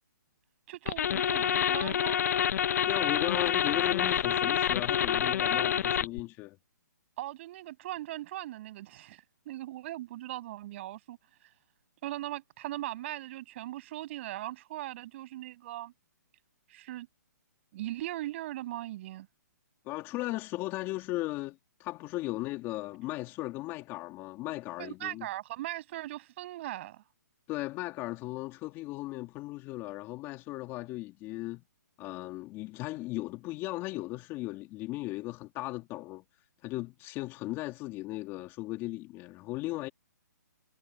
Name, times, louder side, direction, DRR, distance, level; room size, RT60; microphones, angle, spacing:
voice 1, 0.7-2.2 7.2-11.2 12.0-15.9 16.7-17.1 17.7-19.3 20.3-20.4 24.8-27.0, right 15 dB, 40° right, 6.6 m, -39 dB
sound 1, 0.9-6.2, left 9 dB, 60° left, 0.7 m, -27 dB
voice 2, 2.9-6.6 19.9-25.3 27.5-31.6 32.0-36.2 36.6-39.9, left 19 dB, 25° left, 2.4 m, -36 dB
hypercardioid pair, 150°, 10 cm